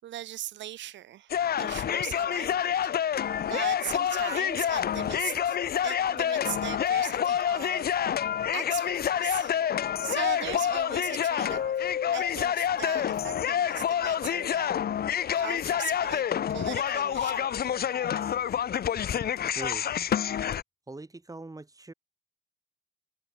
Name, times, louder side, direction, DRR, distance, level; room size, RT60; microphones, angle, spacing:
voice 1, 0.0-5.6 5.8-7.9 8.5-14.7 15.4-16.2 16.5-17.8, right 13 dB, 70° right, 6.6 m, -39 dB
sound 1, 1.3-20.6, left 9 dB, 50° left, 1.3 m, -28 dB
voice 2, 19.4-19.9 20.9-21.9, right 2 dB, 15° right, 5.8 m, -41 dB
supercardioid pair, 60°, 20 cm